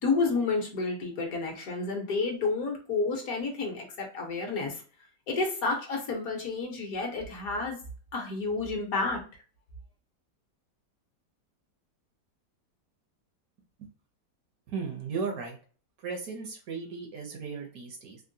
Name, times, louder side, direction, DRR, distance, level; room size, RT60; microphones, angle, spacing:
voice 1, 0.0-4.8 5.3-7.8 8.1-9.2, left 3 dB, 60° left, 1 dB, 1.2 m, -30 dB
voice 2, 14.7-15.6 16.0-18.2, right 5 dB, 70° right, 3 dB, 1.0 m, -36 dB
3.6 x 2.1 x 2.6 m, 0.40 s
omnidirectional pair, 1.8 m